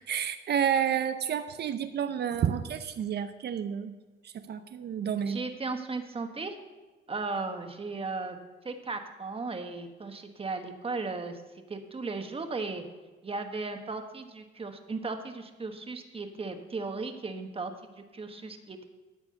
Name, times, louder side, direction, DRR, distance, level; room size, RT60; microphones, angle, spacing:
voice 1, 0.1-3.9 4.3-5.4, right 8 dB, 55° right, 10 dB, 0.6 m, -30 dB
voice 2, 5.3-6.5 7.1-8.4 8.6-11.4 11.7-12.8 13.2-18.9, right 3 dB, 30° right, 6 dB, 1.3 m, -36 dB
13.5 x 4.8 x 7.8 m, 1.2 s
cardioid pair, 90°, 20 cm